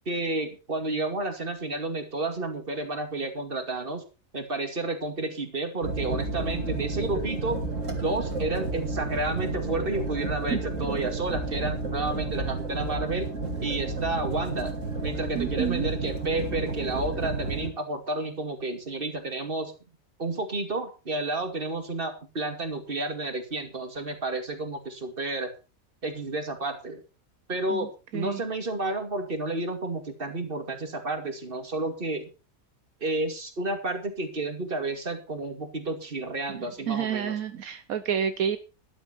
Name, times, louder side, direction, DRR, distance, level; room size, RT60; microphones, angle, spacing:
voice 1, 0.1-4.0 4.3-7.6 8.0-13.3 13.6-14.8 15.0-19.7 20.2-25.5 26.0-27.0 27.5-32.3 33.0-37.4, right 2 dB, 40° right, 6 dB, 2.6 m, -31 dB
sound 1, 5.8-17.7, right 3 dB, 60° right, 3.0 m, -31 dB
voice 2, 15.3-15.9 27.7-27.9 28.1-28.4 36.6-38.6, right 8 dB, 80° right, 10 dB, 1.3 m, -29 dB
13.0 x 12.0 x 4.4 m, 0.32 s
omnidirectional pair, 1.5 m